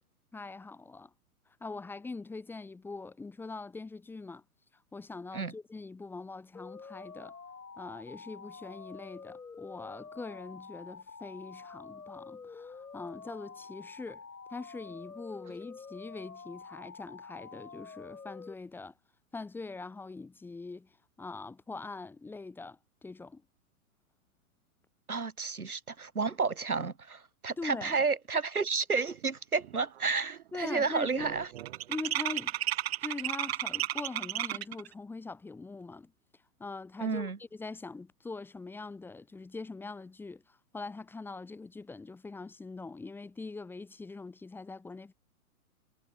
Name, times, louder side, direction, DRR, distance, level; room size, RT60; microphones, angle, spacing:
voice 1, 0.3-1.1 1.6-4.4 4.9-7.3 7.8-14.2 14.5-18.9 19.3-20.9 21.2-23.4 27.6-27.9 30.5-31.3 31.9-32.6 33.0-36.1 36.6-45.1, left 3 dB, 5° left, 1.0 m, -42 dB
sound 1, 6.5-18.5, left 5 dB, 90° left, 1.1 m, -48 dB
voice 2, 25.1-31.5 37.0-37.4, right 4 dB, 85° right, 1.5 m, -31 dB
sound 2, 29.2-29.3 29.6-30.0 30.2-34.9, right 13 dB, 45° right, 1.0 m, -34 dB
figure-of-eight pair, 110°, 43 cm